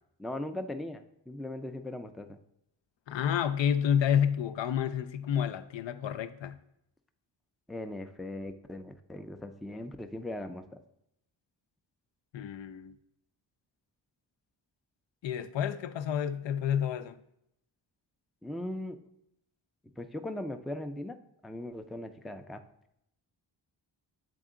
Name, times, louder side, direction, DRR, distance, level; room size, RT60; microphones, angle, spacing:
voice 1, 0.2-2.4 7.7-10.6 18.4-19.0 20.0-21.2 21.4-22.6, left 1 dB, ahead, 0.4 m, -39 dB
voice 2, 3.1-6.6 12.3-12.9 15.2-17.2, left 9 dB, 80° left, 0.5 m, -29 dB
7.8 x 3.5 x 3.7 m
cardioid pair, 65°, 44 cm